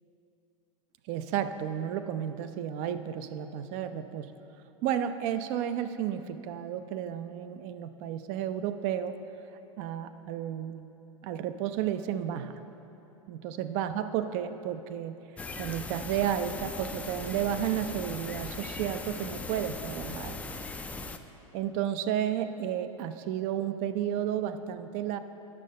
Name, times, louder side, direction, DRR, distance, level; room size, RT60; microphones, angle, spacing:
voice 1, 1.1-4.3 4.8-9.2 9.8-10.8 11.2-12.6 13.3-15.1 15.6-20.4 21.5-25.2, right 10 dB, 45° right, 11 dB, 0.5 m, -32 dB
sound 1, 15.4-21.2, left 3 dB, 10° left, 0.4 m, -39 dB
9.7 x 6.5 x 5.5 m, 2.9 s
hypercardioid pair, 100°, 17 cm